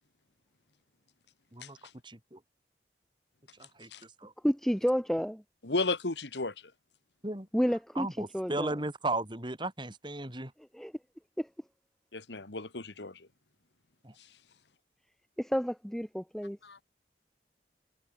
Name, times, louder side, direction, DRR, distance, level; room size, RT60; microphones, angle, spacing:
voice 1, 2.0-2.4 3.6-4.3 7.2-7.5 8.0-10.5 14.0-14.1, right 2 dB, 25° right, 4.4 m, -36 dB
voice 2, 4.4-5.4 7.5-8.1 8.3-8.8 10.7-10.9 11.4-11.5 15.4-16.6, equal, ahead, 1.7 m, -30 dB
voice 3, 5.6-6.5 12.1-13.3 16.6-16.8, left 3 dB, 80° left, 1.9 m, -34 dB
head